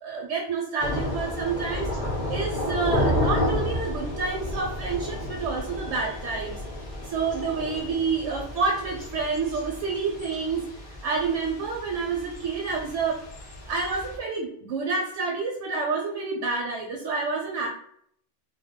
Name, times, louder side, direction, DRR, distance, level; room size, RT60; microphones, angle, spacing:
voice 1, 0.0-1.9 2.3-6.6 7.1-10.7 11.0-13.2 13.7-17.7, right 4 dB, 75° right, 0 dB, 0.9 m, -28 dB
Thunder / Rain, 0.8-14.2, left 1 dB, 45° left, 0.7 m, -31 dB
2.2 x 2.2 x 3.5 m, 0.66 s
omnidirectional pair, 1.3 m